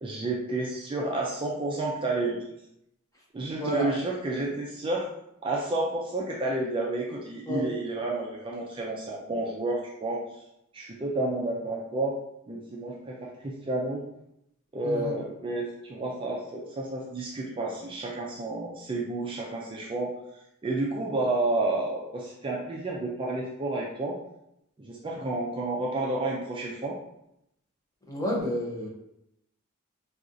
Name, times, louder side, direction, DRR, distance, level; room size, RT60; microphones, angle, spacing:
voice 1, 0.0-2.5 3.3-5.1 5.4-10.2 10.7-12.1 12.5-14.0 14.7-20.1 20.6-24.2 24.8-27.0, right 2 dB, 25° right, -3 dB, 0.4 m, -30 dB
voice 2, 3.5-3.9 7.5-7.7 14.8-15.1 25.1-25.3 28.1-28.9, equal, 15° left, -4 dB, 0.8 m, -30 dB
4.1 x 2.4 x 2.5 m, 0.81 s
head